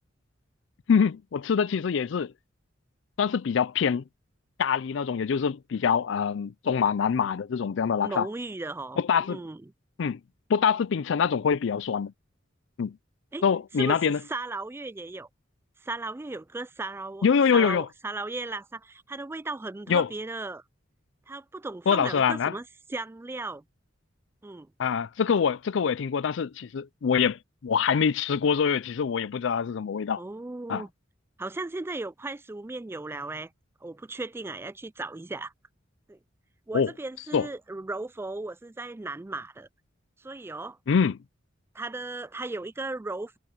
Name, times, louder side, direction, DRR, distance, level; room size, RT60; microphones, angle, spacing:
voice 1, 0.9-2.3 3.2-4.0 4.6-8.3 9.0-9.4 10.0-10.2 10.5-12.1 12.8-13.0 13.4-14.2 17.2-17.9 19.9-20.1 21.9-22.6 24.8-30.2 30.7-30.8 36.7-36.9 37.3-37.5 40.9-41.2, left 6 dB, 70° left, 0.4 m, -25 dB
voice 2, 8.0-9.0 9.3-9.6 13.3-13.4 13.8-15.3 15.8-17.2 17.5-20.6 21.3-22.6 22.9-23.6 24.4-24.7 25.8-25.9 30.2-30.9 31.4-33.5 33.8-35.5 36.1-36.2 36.7-39.7 40.2-40.8 41.7-43.4, right 2 dB, 10° right, 0.3 m, -36 dB
head